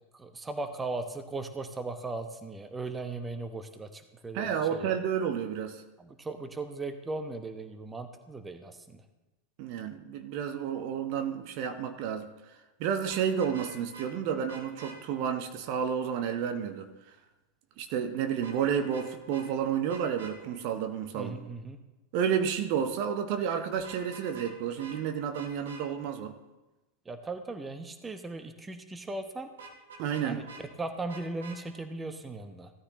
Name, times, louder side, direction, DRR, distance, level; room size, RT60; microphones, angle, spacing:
voice 1, 0.1-5.0 6.0-8.8 21.1-21.8 27.1-29.5 30.2-32.7, right 3 dB, 10° right, 8 dB, 1.1 m, -38 dB
voice 2, 4.3-5.8 9.6-12.3 12.8-16.9 17.8-21.4 22.1-26.4 30.0-30.4, right 8 dB, 45° right, 7 dB, 1.1 m, -31 dB
Vehicle horn car horn honking, 13.0-14.1 14.5-15.0 18.4-19.1 19.3-19.4 19.9-20.3 23.8-24.5 24.8-25.0 25.3-25.8 29.6-30.6 31.1-31.6, right 4 dB, 65° right, 2.4 m, -46 dB
17.0 x 13.0 x 3.2 m, 1.1 s
figure-of-eight pair, 90°, 0 cm